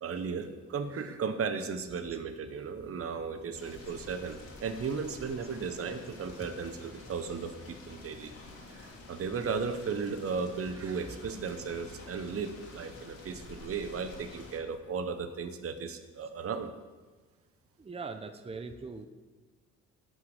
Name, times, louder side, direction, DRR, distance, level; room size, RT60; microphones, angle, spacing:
voice 1, 0.0-8.3 8.7-16.7, right 5 dB, 50° right, 8 dB, 1.0 m, -35 dB
sound 1, 3.5-14.6, left 2 dB, 50° left, 2.6 m, -49 dB
voice 2, 17.8-19.1, right 4 dB, 20° right, 8 dB, 0.8 m, -41 dB
11.5 x 6.5 x 8.1 m, 1.3 s
cardioid pair, 90°, 30 cm